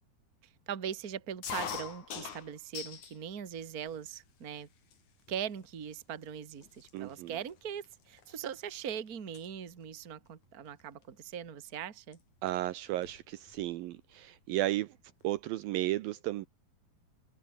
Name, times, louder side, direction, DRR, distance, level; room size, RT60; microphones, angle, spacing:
voice 1, 0.7-4.7 5.3-12.2, right 8 dB, 35° right, 1.7 m, -40 dB
sound 1, 1.4-3.2 3.6-4.3 4.9-5.0 5.3-5.7 6.3-6.4 6.6-8.9 9.1-9.5 10.8-11.0 12.1-12.2 12.5-12.6 12.8-13.7, left 7 dB, 50° left, 3.9 m, -43 dB
voice 2, 6.9-7.3 12.4-14.9 15.2-16.5, right 15 dB, 75° right, 2.3 m, -34 dB
omnidirectional pair, 4.5 m